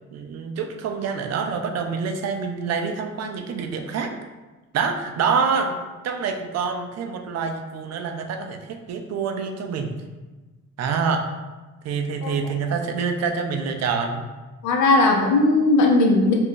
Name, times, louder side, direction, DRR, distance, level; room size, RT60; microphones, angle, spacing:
voice 1, 0.1-4.1 4.7-5.8 6.0-9.9 10.8-11.3 11.8-14.3, right 5 dB, 60° right, 5 dB, 0.4 m, -26 dB
voice 2, 14.6-16.3, left 2 dB, 75° left, 0 dB, 0.7 m, -17 dB
2.5 x 2.2 x 3.6 m, 1.2 s
cardioid pair, 90°, 30 cm